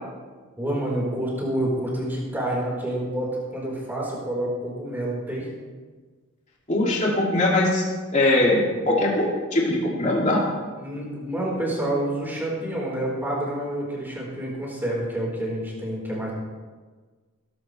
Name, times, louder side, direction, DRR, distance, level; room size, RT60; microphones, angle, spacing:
voice 1, 0.6-5.5 10.8-16.3, right 1 dB, 10° right, -4 dB, 4.3 m, -28 dB
voice 2, 6.7-7.8 8.1-10.4, left 1 dB, 35° left, -3 dB, 2.6 m, -21 dB
21.0 x 12.5 x 3.4 m, 1.4 s
head